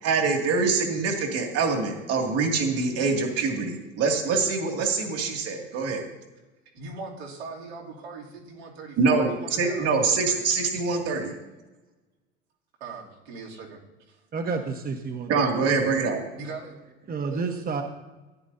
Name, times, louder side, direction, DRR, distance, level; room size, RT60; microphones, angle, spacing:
voice 1, 0.0-6.1 9.0-11.3 15.3-16.2, right 4 dB, 50° right, 2 dB, 2.4 m, -24 dB
voice 2, 6.7-10.5 12.8-13.8 14.1-14.2 16.4-16.8 17.2-17.4, right 4 dB, 80° right, -3 dB, 2.9 m, -40 dB
voice 3, 14.3-15.5 17.1-17.8, right 4 dB, 30° right, 4 dB, 1.2 m, -30 dB
15.0 x 10.5 x 2.8 m, 1.1 s
hypercardioid pair, 75°, 31 cm